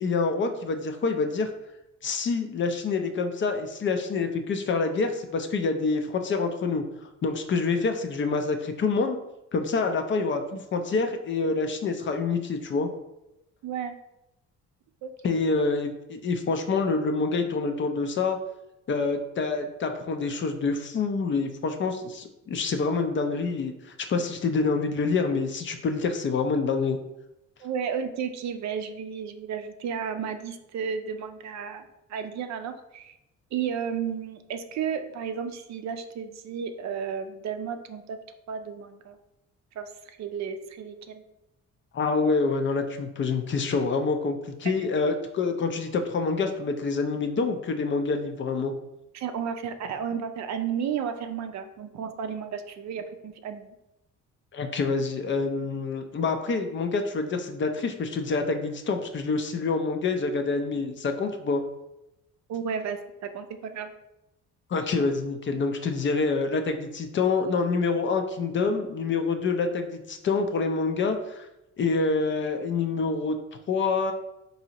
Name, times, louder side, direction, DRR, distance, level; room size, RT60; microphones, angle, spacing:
voice 1, 0.0-1.5 2.0-6.8 7.2-9.2 9.5-12.9 15.2-18.4 18.9-23.7 24.1-27.0 41.9-48.7 54.5-61.6 64.7-71.5 71.8-73.4 73.7-74.1, left 4 dB, 40° left, 6 dB, 0.4 m, -27 dB
voice 2, 13.6-14.0 15.0-15.1 27.6-33.1 33.5-38.2 38.5-39.2 39.8-39.9 40.2-41.2 44.8-44.9 49.1-53.7 62.5-63.9, right 7 dB, 65° right, 8 dB, 0.4 m, -33 dB
4.0 x 2.7 x 2.8 m, 0.90 s
cardioid pair, 90°, 30 cm